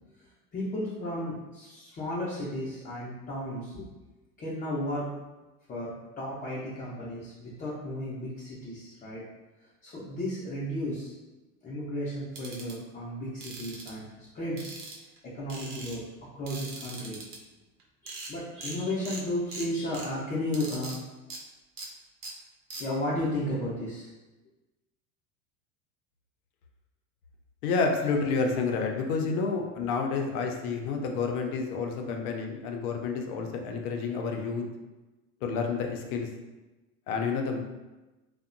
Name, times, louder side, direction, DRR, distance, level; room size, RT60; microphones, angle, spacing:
voice 1, 0.5-3.9 4.4-5.1 5.7-9.2 9.8-11.1 11.6-14.8 15.2-16.0 16.3-17.2 18.0-20.9 22.8-24.1, left 1 dB, 20° left, -7 dB, 0.5 m, -34 dB
sound 1, 12.3-12.7 13.4-13.9 14.6-15.2 15.5-16.0 16.5-17.4 17.8-17.9 18.1-18.3 18.6-18.8 19.0-19.2 19.5-20.1 20.5-21.0 21.3-21.4 21.8-21.9 22.2-22.3 22.7-22.8, right 3 dB, 80° right, 0.8 m, -40 dB
voice 2, 27.6-34.6 35.4-36.3 37.1-37.6, left 4 dB, 75° left, 3 dB, 0.6 m, -29 dB
2.6 x 2.2 x 2.5 m, 1.1 s
hypercardioid pair, 100°, 44 cm